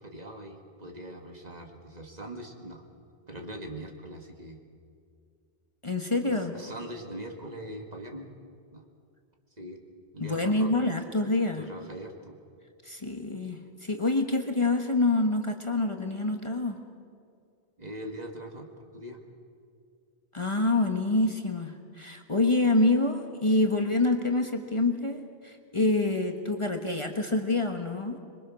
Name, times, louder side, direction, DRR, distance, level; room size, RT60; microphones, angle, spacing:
voice 1, 0.0-2.8 3.3-4.6 6.2-8.3 8.7-8.8 9.6-9.8 10.1-10.7 11.6-12.4 17.8-18.7 18.9-19.2, right 1 dB, 40° right, 2 dB, 2.1 m, -41 dB
voice 2, 5.8-6.5 10.2-11.7 12.8-16.8 20.3-28.2, left 2 dB, 30° left, 4 dB, 1.3 m, -26 dB
25.5 x 22.5 x 6.3 m, 2.3 s
omnidirectional pair, 1.1 m